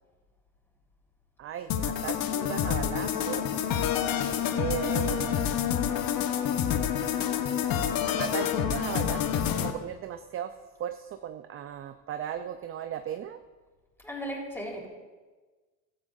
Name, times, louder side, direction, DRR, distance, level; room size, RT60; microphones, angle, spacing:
voice 1, 1.4-3.6 4.5-7.2 8.2-10.5 10.8-13.4, right 10 dB, 30° right, 9 dB, 0.5 m, -37 dB
sound 1, 1.7-9.7, left 9 dB, 45° left, 1.1 m, -28 dB
voice 2, 14.0-14.9, equal, 5° left, -1 dB, 4.0 m, -36 dB
16.0 x 13.0 x 2.6 m, 1.3 s
hypercardioid pair, 85°, 49 cm